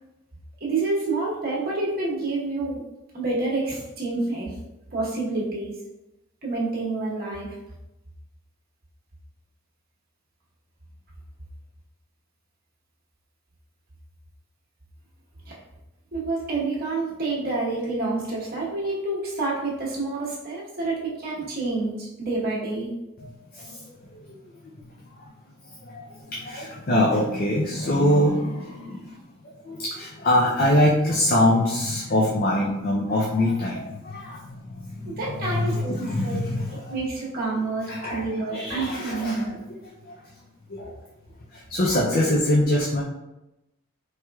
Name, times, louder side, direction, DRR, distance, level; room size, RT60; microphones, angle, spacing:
voice 1, 0.6-2.8 3.1-4.5 4.9-5.7 6.4-7.5 15.5-15.6 16.1-22.9 35.1-35.9 36.2-36.4 36.9-39.6, right 3 dB, 45° right, -5 dB, 1.2 m, -28 dB
voice 2, 23.2-23.8 24.1-24.4 25.9-29.2 29.7-37.0 37.9-39.5 40.1-40.2 40.7-40.9 41.5-43.0, left 1 dB, 45° left, -4 dB, 0.5 m, -24 dB
4.5 x 3.2 x 2.3 m, 0.95 s
head